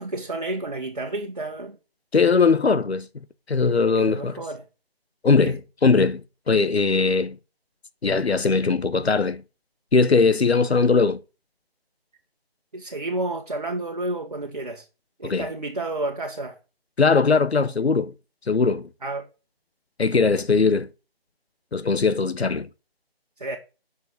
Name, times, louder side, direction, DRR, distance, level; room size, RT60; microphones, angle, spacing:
voice 1, 0.0-1.8 3.9-4.6 5.4-5.6 12.7-14.8 15.2-16.6 19.0-19.3 23.4-23.6, right 2 dB, 40° right, 1.5 m, -30 dB
voice 2, 2.1-3.1 3.5-4.4 5.2-7.4 8.0-9.4 9.9-11.2 15.2-15.5 17.0-18.1 18.5-18.9 20.0-20.9 21.7-22.7, left 4 dB, 90° left, 1.0 m, -20 dB
8.2 x 6.3 x 7.6 m
figure-of-eight pair, 175°, 31 cm